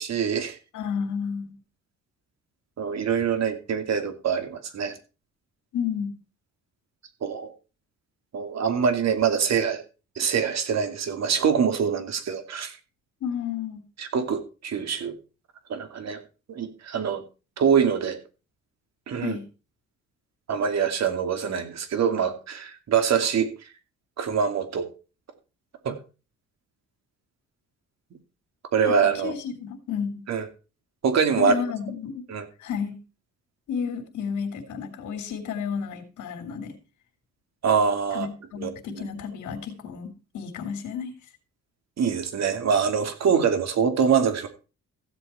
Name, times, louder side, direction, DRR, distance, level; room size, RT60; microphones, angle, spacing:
voice 1, 0.0-0.6 2.8-4.9 7.2-7.5 8.3-9.8 10.2-12.7 14.0-15.2 15.7-16.2 16.5-17.2 17.6-18.2 19.1-19.4 20.5-23.5 24.2-24.9 25.8-25.9 28.7-29.3 30.3-30.5 31.0-31.5 32.3-32.5 37.6-38.3 38.6-38.7 42.0-44.5, right 6 dB, 60° right, 7 dB, 2.7 m, -24 dB
voice 2, 0.7-1.5 5.7-6.1 13.2-13.8 19.2-19.4 28.9-29.0 29.2-30.2 31.4-32.2 32.6-33.0 33.7-36.7 38.1-41.1, left 7 dB, 75° left, 3 dB, 3.0 m, -31 dB
15.5 x 7.9 x 4.4 m, 0.33 s
cardioid pair, 90°, 30 cm